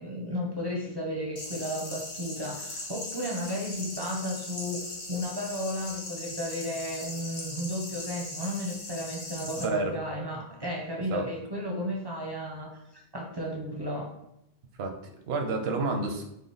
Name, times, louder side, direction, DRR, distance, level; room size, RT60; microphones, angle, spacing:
voice 1, 0.0-14.1, equal, 30° right, -1 dB, 0.5 m, -34 dB
sound 1, 1.4-9.6, left 2 dB, 55° left, 0.8 m, -39 dB
voice 2, 9.6-9.9 11.1-11.2 14.8-16.2, right 3 dB, 85° right, 4 dB, 0.9 m, -30 dB
3.6 x 2.1 x 3.7 m, 0.81 s
omnidirectional pair, 1.0 m